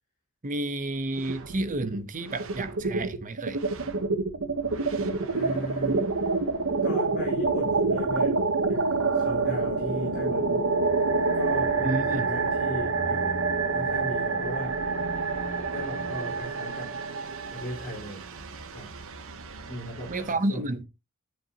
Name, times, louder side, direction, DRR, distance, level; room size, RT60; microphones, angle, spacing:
voice 1, 0.4-3.6 11.8-12.3 20.1-20.8, right 2 dB, 35° right, 0.7 m, -30 dB
sound 1, 1.2-2.0 2.3-20.3, right 4 dB, 65° right, 1.0 m, -28 dB
sound 2, 5.0-16.4, left 1 dB, 80° left, 2.2 m, -42 dB
voice 2, 5.3-6.0 6.8-8.4 8.7-10.6 11.3-13.5 13.7-14.8 15.7-16.9 17.5-18.2 18.7-18.9 19.7-20.8, equal, 45° left, 4.1 m, -37 dB
9.6 x 7.8 x 2.8 m
head